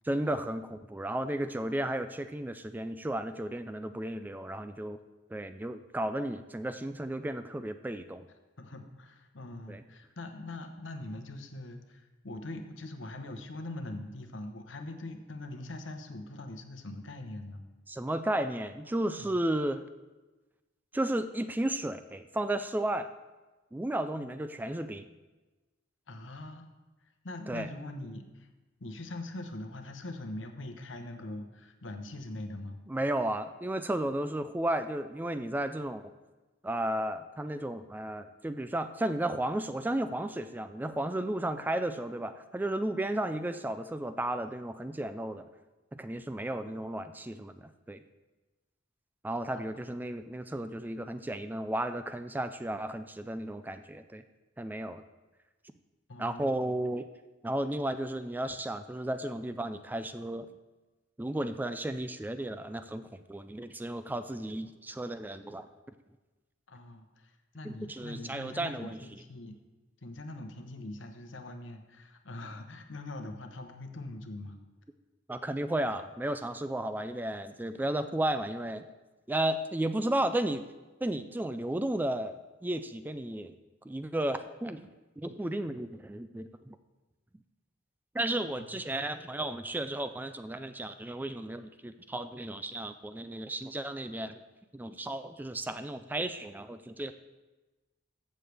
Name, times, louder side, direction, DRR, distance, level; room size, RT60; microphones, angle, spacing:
voice 1, 0.0-5.0 5.3-8.3 9.7-9.8 17.9-19.8 20.9-23.1 23.7-25.1 27.5-27.7 32.9-36.0 36.6-45.5 45.9-48.0 49.2-54.2 54.6-55.0 56.2-57.1 57.4-60.5 61.2-65.7 67.6-69.0 75.3-78.9 79.3-80.6 81.0-82.4 82.6-83.6 83.9-84.9 85.2-86.8 88.1-94.4 94.7-97.1, right 1 dB, 10° right, 10 dB, 0.3 m, -33 dB
voice 2, 8.6-17.6 19.2-19.4 26.1-26.7 27.2-28.5 28.8-32.8 46.6-46.8 49.5-49.9 56.1-56.8 66.7-69.5 70.0-74.6 88.6-88.8, left 2 dB, 75° left, 6 dB, 1.0 m, -42 dB
14.5 x 6.5 x 3.4 m, 1.2 s
head